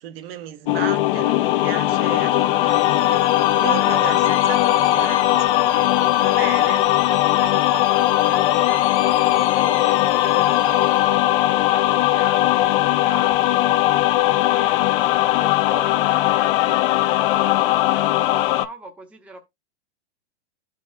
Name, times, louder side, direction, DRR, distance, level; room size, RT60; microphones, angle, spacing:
voice 1, 0.0-3.2 3.6-6.8, right 10 dB, 60° right, 0.9 m, -34 dB
sound 1, 0.7-18.7, left 15 dB, 55° left, 0.6 m, -19 dB
sound 2, 2.7-11.3 16.0-17.3, left 9 dB, 85° left, 1.2 m, -37 dB
voice 2, 6.5-19.4, right 2 dB, 5° right, 0.7 m, -40 dB
12.0 x 4.1 x 2.5 m
supercardioid pair, 150°, 33 cm